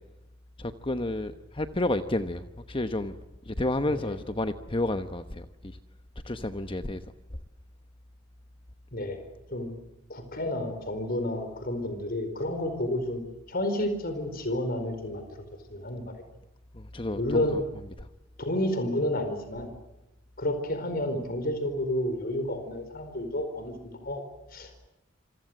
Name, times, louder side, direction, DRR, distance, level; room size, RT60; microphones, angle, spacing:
voice 1, 0.6-3.1 3.5-5.4 6.2-7.0 16.7-17.4, left 1 dB, 25° left, 9 dB, 1.1 m, -30 dB
voice 2, 10.1-13.2 13.5-15.4 15.7-16.1 17.2-17.6 18.4-19.7 20.4-23.7 24.0-24.2 24.5-24.7, left 1 dB, 50° left, 8 dB, 4.7 m, -30 dB
27.5 x 26.5 x 8.0 m, 0.95 s
head